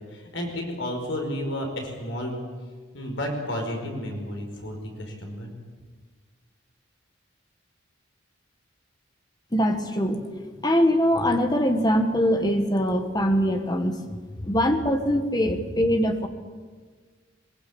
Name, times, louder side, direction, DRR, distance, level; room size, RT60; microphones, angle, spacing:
voice 1, 0.0-2.4 2.9-5.5, left 1 dB, 70° left, 2 dB, 5.1 m, -32 dB
voice 2, 9.5-10.3 10.6-14.0 14.4-16.3, equal, 20° left, 6 dB, 1.7 m, -22 dB
21.5 x 21.5 x 8.8 m, 1.5 s
head